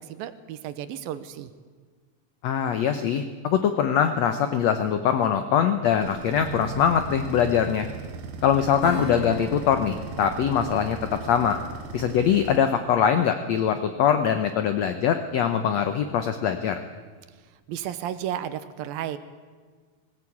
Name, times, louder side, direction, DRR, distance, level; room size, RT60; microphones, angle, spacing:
voice 1, 0.0-1.5 17.7-19.2, right 10 dB, 80° right, 12 dB, 2.6 m, -33 dB
voice 2, 2.4-7.9 8.4-11.6 11.9-16.8, left 8 dB, 85° left, 9 dB, 1.5 m, -23 dB
sound 1, 6.0-12.6, right 5 dB, 60° right, 2.1 m, -38 dB
Acoustic guitar / Strum, 8.8-15.0 15.4-15.5, left 1 dB, 65° left, 7.8 m, -40 dB
20.0 x 17.5 x 8.6 m, 1.5 s
omnidirectional pair, 4.4 m